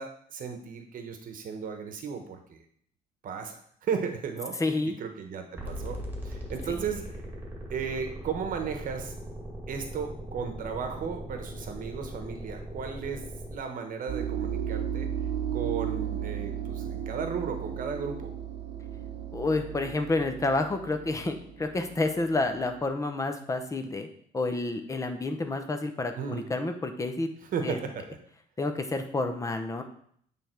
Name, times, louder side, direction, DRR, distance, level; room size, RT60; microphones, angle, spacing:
voice 1, 0.0-2.6 3.2-4.6 4.9-6.0 6.2-7.1 7.7-9.1 9.7-13.2 13.5-15.1 15.5-18.3 26.2-26.4 27.5-28.0, right 6 dB, 55° right, 6 dB, 1.1 m, -35 dB
voice 2, 4.6-4.9 6.7-6.8 19.3-24.1 24.3-27.3 27.6-27.8 28.6-29.8, left 2 dB, 20° left, 6 dB, 0.9 m, -29 dB
sound 1, 5.6-13.6, equal, 10° right, 2.1 m, -39 dB
sound 2, 14.1-22.8, right 9 dB, 75° right, 0.9 m, -35 dB
8.7 x 3.5 x 4.5 m, 0.63 s
cardioid pair, 110°, 17 cm